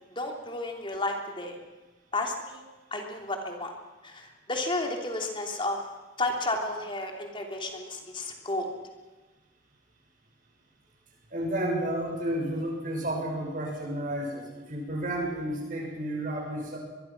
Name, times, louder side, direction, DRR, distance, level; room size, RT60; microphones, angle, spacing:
voice 1, 0.1-1.6 2.1-2.6 2.9-3.7 4.0-5.8 6.2-8.7, left 2 dB, 25° left, 3 dB, 3.2 m, -32 dB
voice 2, 11.3-16.8, right 1 dB, 40° right, 1 dB, 6.5 m, -31 dB
23.0 x 22.5 x 6.1 m, 1.2 s
head